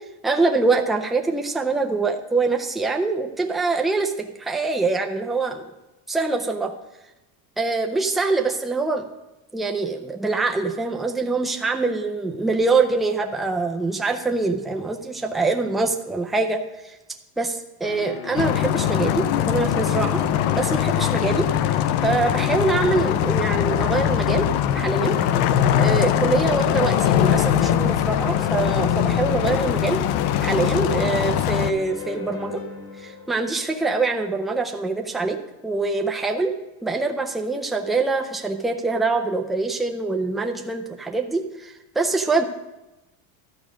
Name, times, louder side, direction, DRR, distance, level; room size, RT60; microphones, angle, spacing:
voice 1, 0.2-5.6 6.1-6.7 7.6-9.0 9.5-16.6 17.4-20.2 20.5-21.5 22.0-24.5 24.7-25.2 25.8-30.0 30.4-32.6 33.0-35.4 35.6-36.5 36.8-42.4, right 3 dB, ahead, 2 dB, 0.4 m, -24 dB
sound 1, 17.8-34.5, left 5 dB, 45° left, 1.7 m, -35 dB
sound 2, 18.4-31.7, left 11 dB, 65° left, 0.6 m, -21 dB
12.5 x 5.0 x 6.1 m, 1.0 s
cardioid pair, 145°, 44 cm